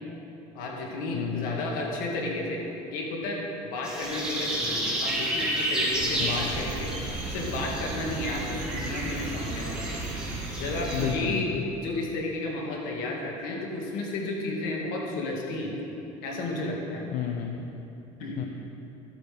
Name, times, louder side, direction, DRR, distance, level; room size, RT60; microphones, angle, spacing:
voice 1, 0.5-10.0 10.6-11.5 11.8-15.7 16.2-17.1 18.2-18.4, left 2 dB, 75° left, -1 dB, 1.9 m, -32 dB
voice 2, 1.1-1.7 6.1-6.5 10.9-11.5 17.1-17.7 18.4-18.5, left 9 dB, 60° left, 3 dB, 0.6 m, -32 dB
sound 1, 3.8-11.1, right 1 dB, 5° right, 2.1 m, -31 dB
sound 2, 5.9-11.2, right 3 dB, 60° right, 2.4 m, -36 dB
11.5 x 8.6 x 3.4 m, 2.9 s
cardioid pair, 120°, 15 cm